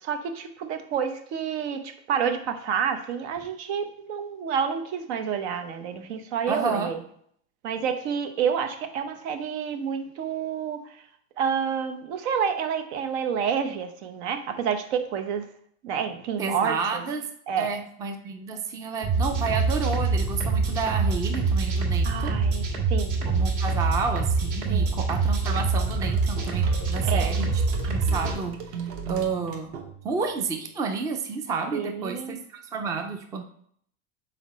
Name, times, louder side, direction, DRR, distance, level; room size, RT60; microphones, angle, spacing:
voice 1, 0.0-7.0 7.6-10.9 11.4-15.5 15.8-17.0 17.5-17.7 22.0-23.2 24.7-24.9 27.0-27.3 31.7-32.4, right 7 dB, 80° right, 8 dB, 0.9 m, -29 dB
voice 2, 6.5-7.0 16.4-17.3 17.6-22.4 23.2-28.6 29.1-29.7 30.0-33.4, right 5 dB, 10° right, 5 dB, 0.3 m, -30 dB
sound 1, 19.0-28.3, right 4 dB, 60° right, 1.9 m, -25 dB
sound 2, 25.5-30.3, right 4 dB, 45° right, 0.9 m, -38 dB
5.8 x 4.3 x 4.1 m, 0.65 s
supercardioid pair, 155°, 33 cm